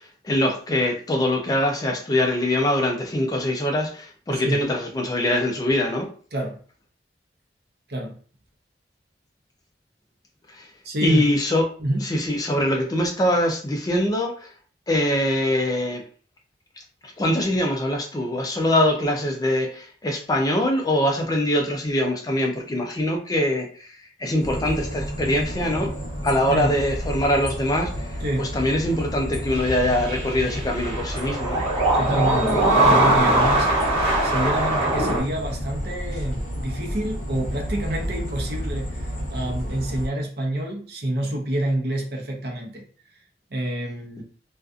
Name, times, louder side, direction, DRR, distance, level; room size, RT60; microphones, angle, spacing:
voice 1, 0.0-6.1 10.6-10.7 11.0-11.6 12.0-14.5 14.9-16.0 17.0-25.9 26.2-28.1 28.4-31.6, left 1 dB, 20° left, 0.3 m, -23 dB
voice 2, 4.3-4.6 6.3-6.6 7.9-8.2 10.8-11.3 11.8-12.0 26.5-26.7 28.2-28.5 31.9-42.8 43.5-44.2, right 1 dB, 60° right, 0.7 m, -28 dB
sound 1, 24.4-40.1, equal, 45° left, 0.8 m, -31 dB
sound 2, 29.5-35.2, right 1 dB, 35° right, 1.1 m, -21 dB
2.5 x 2.4 x 2.4 m
head